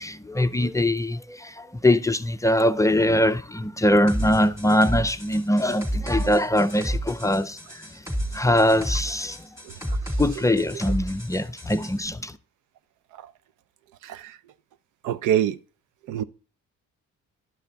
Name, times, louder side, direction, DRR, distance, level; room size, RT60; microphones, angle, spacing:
voice 1, 0.0-8.0 8.3-9.5 10.2-12.4, left 1 dB, 10° left, 0.4 m, -22 dB
sound 1, 4.1-11.9, equal, 10° right, 2.9 m, -31 dB
voice 2, 15.0-15.6 16.1-16.2, right 10 dB, 85° right, 0.6 m, -24 dB
11.5 x 5.7 x 4.0 m
cardioid pair, 90°, 30 cm